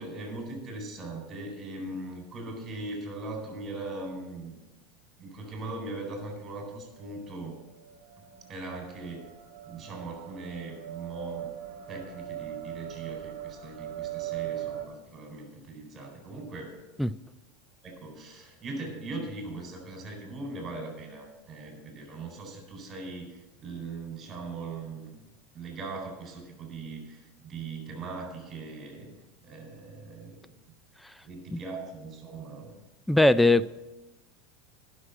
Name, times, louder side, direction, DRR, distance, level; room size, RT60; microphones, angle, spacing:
voice 1, 0.0-4.6 5.2-7.6 8.5-9.3 9.7-11.5 11.9-16.8 17.8-25.3 25.5-29.1 29.4-30.5 31.2-32.7, right 3 dB, 30° right, 3 dB, 4.1 m, -40 dB
sound 1, 6.9-14.8, right 13 dB, 65° right, 1.4 m, -40 dB
voice 2, 33.1-33.8, left 2 dB, 5° left, 16 dB, 0.3 m, -21 dB
11.0 x 6.2 x 8.2 m, 1.1 s
hypercardioid pair, 100°, 0 cm